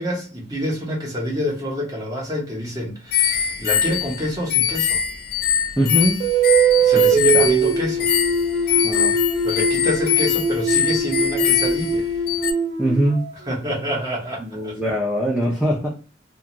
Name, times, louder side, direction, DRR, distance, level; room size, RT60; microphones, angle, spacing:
voice 1, 0.0-5.0 6.8-8.1 8.6-8.9 9.4-12.1 13.5-14.8, left 1 dB, 20° right, 0.9 m, -27 dB
sound 1, 3.1-12.5, left 9 dB, 55° left, 0.3 m, -23 dB
voice 2, 5.8-6.2 7.3-7.5 8.8-9.1 12.8-13.2 14.4-15.9, equal, ahead, 0.6 m, -21 dB
sound 2, 6.2-13.5, right 4 dB, 45° right, 1.0 m, -21 dB
2.4 x 2.4 x 2.9 m
head